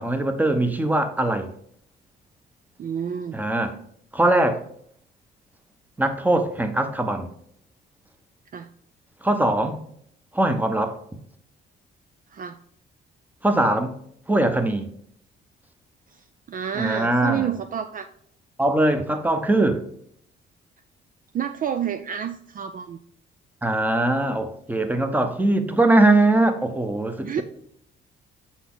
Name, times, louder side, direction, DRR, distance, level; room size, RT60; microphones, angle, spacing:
voice 1, 0.0-1.5 3.3-3.8 4.1-4.6 6.0-7.3 9.2-9.8 10.3-11.0 13.4-14.0 14.3-14.9 16.7-17.5 18.6-19.8 23.6-27.4, right 2 dB, 10° right, 7 dB, 0.8 m, -21 dB
voice 2, 2.8-3.4 8.5-8.7 12.3-12.6 16.1-18.1 21.3-23.0 27.2-27.4, right 8 dB, 45° right, 8 dB, 0.4 m, -29 dB
7.0 x 4.1 x 3.8 m, 0.67 s
cardioid pair, 90°, 20 cm